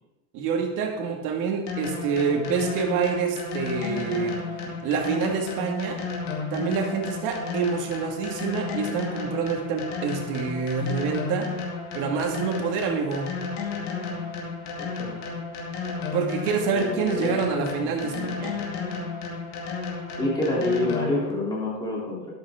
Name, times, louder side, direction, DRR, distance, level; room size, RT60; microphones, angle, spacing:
voice 1, 0.3-4.4 4.8-6.0 6.5-11.5 11.9-13.3 16.1-18.5, right 5 dB, 60° right, 2 dB, 1.9 m, -27 dB
sound 1, 1.7-21.3, left 4 dB, 50° left, 2.4 m, -33 dB
voice 2, 14.8-15.2 16.7-18.6 20.2-22.2, left 2 dB, 10° left, -5 dB, 3.1 m, -28 dB
12.5 x 12.0 x 3.6 m, 1.1 s
cardioid pair, 180°, 35 cm